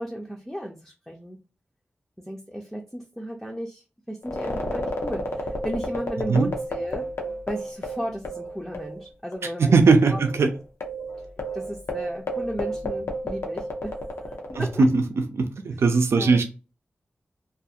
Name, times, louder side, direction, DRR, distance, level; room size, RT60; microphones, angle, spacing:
voice 1, 0.0-1.4 2.2-7.0 7.5-9.7 10.1-10.2 11.2-11.3 11.5-14.9 16.2-16.4, equal, 5° left, 0.4 m, -35 dB
sound 1, 4.2-9.1 9.3-9.4 10.1-14.8, equal, 90° left, 0.6 m, -32 dB
voice 2, 9.6-10.5 14.6-15.0 15.3-16.4, right 4 dB, 85° right, 0.5 m, -19 dB
2.4 x 2.4 x 2.7 m
wide cardioid pair, 95°, 4 cm